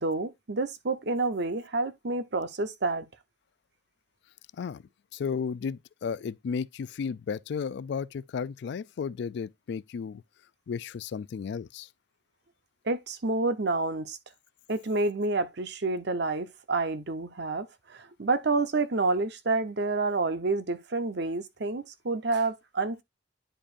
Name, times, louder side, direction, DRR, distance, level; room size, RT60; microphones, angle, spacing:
voice 1, 0.0-3.0 12.8-14.2 14.7-23.0, right 3 dB, 65° right, 0.9 m, -29 dB
voice 2, 5.1-10.2 10.7-11.9, left 6 dB, 65° left, 0.3 m, -34 dB
10.0 x 5.0 x 2.5 m
head